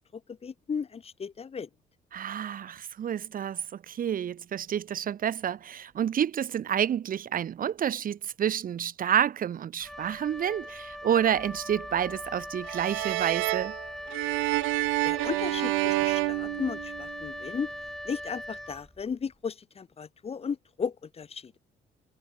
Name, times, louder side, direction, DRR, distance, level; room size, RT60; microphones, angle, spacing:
voice 1, 0.0-1.7 15.0-17.7 18.0-21.6, left 6 dB, 30° left, 0.6 m, -35 dB
voice 2, 2.1-13.8, right 9 dB, 45° right, 0.6 m, -29 dB
Wind instrument woodwind instrument, 9.8-19.3, equal, ahead, 0.8 m, -41 dB
sound 1, 12.7-17.3, right 26 dB, 85° right, 0.7 m, -29 dB
supercardioid pair, 60°, 20 cm